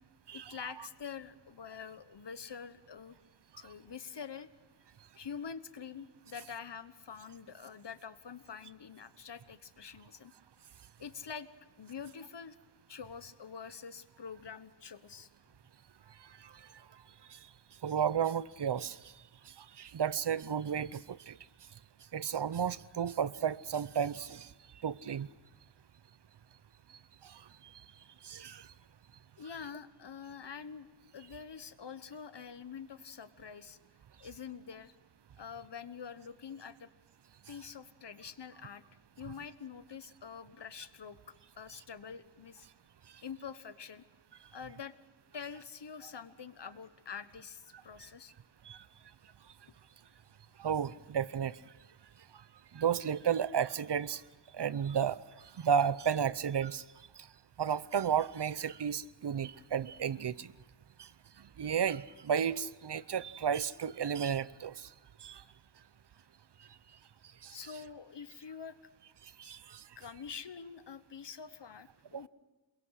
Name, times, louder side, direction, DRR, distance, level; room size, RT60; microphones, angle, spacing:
voice 1, 0.3-3.2 3.6-4.5 5.2-10.3 11.0-11.5 11.8-12.6 12.9-15.3 29.4-30.9 31.1-33.8 34.2-34.9 35.4-36.9 37.5-38.8 39.2-42.7 43.2-44.0 44.5-44.9 45.3-48.3 67.5-68.8 70.0-72.3, left 6 dB, 70° left, 13 dB, 1.2 m, -46 dB
voice 2, 17.8-19.1 19.6-21.4 22.1-24.5 24.8-25.3 27.2-27.4 28.2-28.7 48.6-48.8 50.6-51.6 52.7-54.2 54.5-55.2 55.6-56.8 57.6-60.5 61.0-61.1 61.6-64.9 65.2-65.4 67.4-67.6 69.2-69.8 72.1-72.3, right 8 dB, 65° right, 18 dB, 0.7 m, -33 dB
28.0 x 22.0 x 6.4 m, 1.1 s
wide cardioid pair, 90°, 43 cm